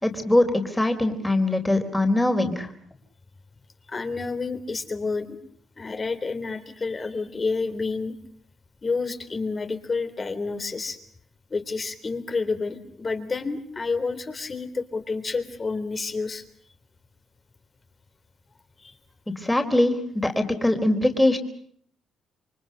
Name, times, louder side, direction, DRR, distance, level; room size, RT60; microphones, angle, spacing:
voice 1, 0.0-2.7 19.3-21.4, left 1 dB, 10° left, 5 dB, 4.1 m, -22 dB
voice 2, 3.9-5.4 5.8-8.1 8.8-11.0 11.5-16.4 18.8-18.9, left 4 dB, 30° left, 9 dB, 3.7 m, -29 dB
28.5 x 24.5 x 6.7 m, 0.63 s
cardioid pair, 90°, 0 cm